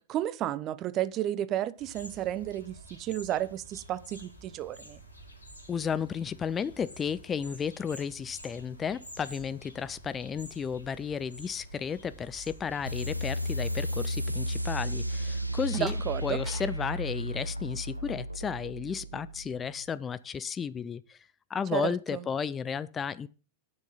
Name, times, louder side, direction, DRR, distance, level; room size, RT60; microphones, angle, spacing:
voice 1, 0.1-5.0 15.8-16.4 21.7-22.2, right 12 dB, 35° right, 0.6 m, -32 dB
sound 1, 1.8-13.9, equal, 80° left, 2.9 m, -49 dB
voice 2, 5.7-21.2 21.5-23.3, left 7 dB, 20° left, 0.4 m, -33 dB
sound 2, 12.9-20.0, equal, 90° right, 0.6 m, -33 dB
sound 3, 15.3-18.1, right 1 dB, 5° right, 5.4 m, -51 dB
9.7 x 6.4 x 5.7 m
figure-of-eight pair, 90°, 0 cm